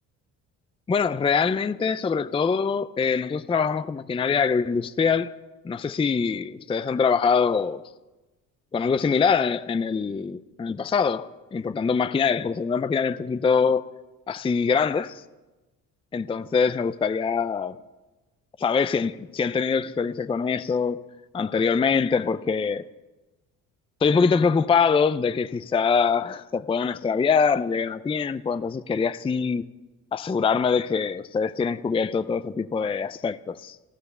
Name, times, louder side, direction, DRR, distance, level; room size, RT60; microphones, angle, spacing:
voice 1, 0.9-5.3 5.6-7.8 8.7-13.9 14.3-15.2 16.1-17.8 18.6-21.0 21.3-22.9 24.0-29.7 30.1-33.8, left 5 dB, 15° left, 0.4 m, -24 dB
14.0 x 13.0 x 6.8 m
cardioid pair, 85°, 36 cm